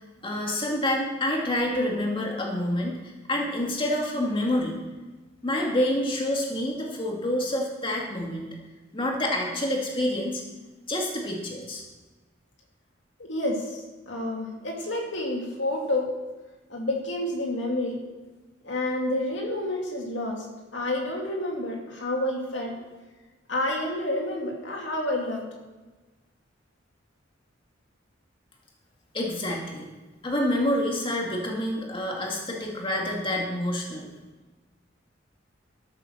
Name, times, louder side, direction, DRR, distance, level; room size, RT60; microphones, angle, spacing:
voice 1, 0.2-3.0 3.3-4.8 5.4-8.5 8.9-10.4 10.9-11.8 29.1-29.9 30.2-34.1, left 1 dB, 30° left, -1 dB, 2.2 m, -27 dB
voice 2, 13.2-16.1 16.7-18.0 18.6-20.5 20.7-22.7 23.5-25.5, left 1 dB, 70° left, -1 dB, 2.5 m, -29 dB
12.5 x 8.7 x 6.7 m, 1.2 s
head